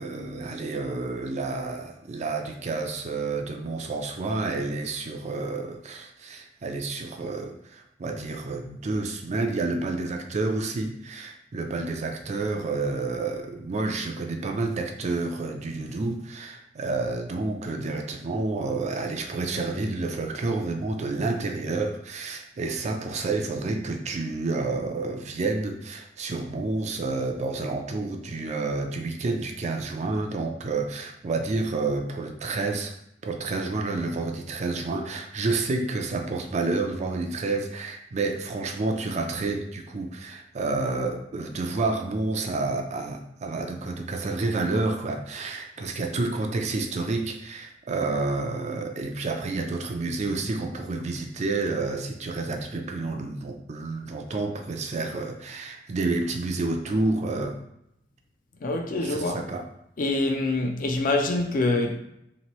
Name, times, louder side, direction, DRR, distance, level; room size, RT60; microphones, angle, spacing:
voice 1, 0.0-32.9 33.2-57.6 59.0-59.6, right 3 dB, 40° right, 0.4 m, -29 dB
voice 2, 58.6-59.4 60.0-62.0, left 2 dB, 50° left, 0.4 m, -25 dB
2.9 x 2.5 x 3.0 m
head